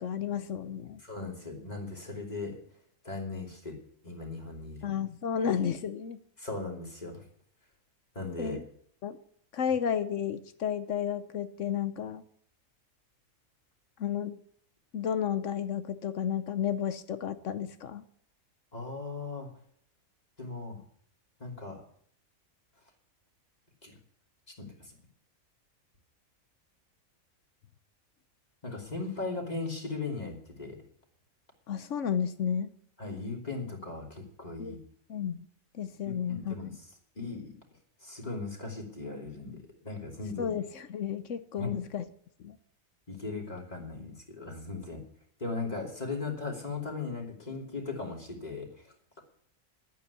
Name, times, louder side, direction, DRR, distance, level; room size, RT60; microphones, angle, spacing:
voice 1, 0.0-1.0 4.8-6.2 8.4-8.6 9.0-9.2 9.5-12.2 14.0-14.4 14.9-18.0 31.7-32.7 34.6-34.8 35.1-35.5 35.8-36.8 40.4-42.0 42.4-42.6, left 8 dB, 65° left, 12 dB, 1.1 m, -32 dB
voice 2, 1.0-2.6 3.0-3.8 4.0-4.9 6.4-7.2 8.1-8.6 18.7-19.5 20.4-20.8 21.4-21.8 23.8-23.9 24.6-25.0 28.6-30.8 33.0-34.8 36.0-36.7 37.2-37.6 38.0-40.6 41.6-41.7 43.1-45.0 45.4-49.2, left 3 dB, 30° left, 0 dB, 3.0 m, -38 dB
12.0 x 9.3 x 8.2 m, 0.63 s
omnidirectional pair, 1.5 m